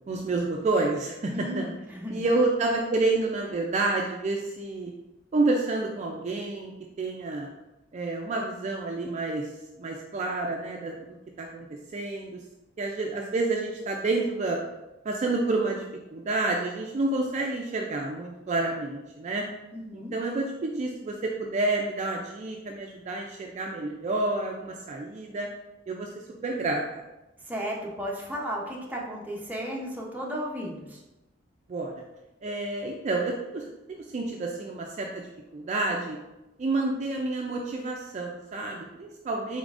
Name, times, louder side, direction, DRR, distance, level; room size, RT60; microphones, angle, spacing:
voice 1, 0.1-1.6 2.1-4.9 5.3-7.5 7.9-9.5 9.8-11.7 11.9-12.4 12.8-14.6 15.0-15.8 16.1-19.4 19.9-25.5 25.9-26.1 26.4-27.0 31.7-32.0 32.4-35.3 35.5-36.2 36.6-39.6, right 2 dB, 40° right, 1 dB, 0.3 m, -29 dB
voice 2, 1.3-2.2 19.7-20.1 27.4-31.0, equal, 10° right, -3 dB, 0.7 m, -34 dB
4.1 x 3.6 x 2.4 m, 0.98 s
head